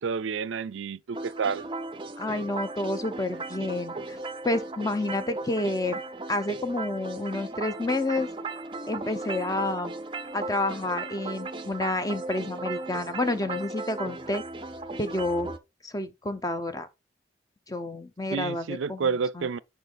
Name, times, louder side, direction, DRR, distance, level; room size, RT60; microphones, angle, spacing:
voice 1, 0.0-1.7 18.3-19.6, right 5 dB, 85° right, 0.5 m, -29 dB
sound 1, 1.1-15.6, right 3 dB, 25° right, 0.5 m, -36 dB
voice 2, 2.2-4.2 4.4-6.0 6.3-8.3 8.9-9.9 10.3-14.4 15.0-15.5 15.8-16.9 17.7-19.1 19.4-19.5, left 2 dB, 20° left, 0.7 m, -29 dB
6.8 x 5.1 x 3.9 m
head